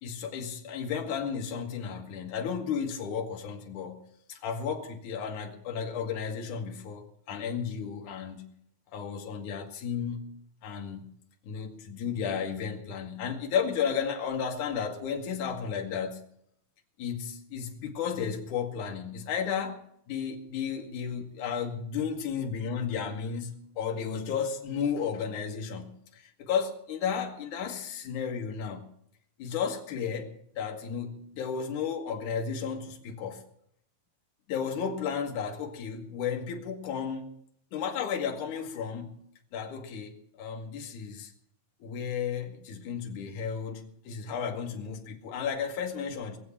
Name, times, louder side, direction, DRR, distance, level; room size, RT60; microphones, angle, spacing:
voice 1, 0.0-4.0 4.3-8.5 8.9-10.3 10.6-11.1 11.4-16.2 17.0-19.8 20.1-28.9 29.4-33.4 34.5-37.3 37.7-39.1 39.5-41.3 41.8-46.4, left 7 dB, 60° left, 3.0 m, -33 dB
20.5 x 7.7 x 7.2 m
omnidirectional pair, 4.2 m